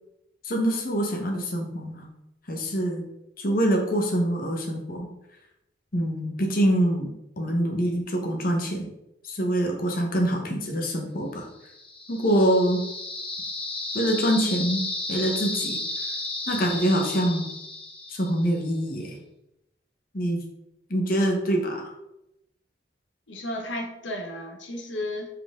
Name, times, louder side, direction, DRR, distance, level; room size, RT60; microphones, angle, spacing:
voice 1, 0.4-2.1 2.5-3.0 3.4-5.1 5.9-7.1 7.4-8.9 9.3-11.5 12.1-12.8 13.9-15.8 16.5-17.4 18.1-19.2 20.1-20.4 20.9-21.9, right 1 dB, 50° left, 1 dB, 1.1 m, -25 dB
sound 1, 11.6-18.6, left 2 dB, 30° left, 1.3 m, -33 dB
voice 2, 23.3-25.3, left 1 dB, 80° left, 2 dB, 1.1 m, -33 dB
5.5 x 4.7 x 3.7 m, 0.86 s
head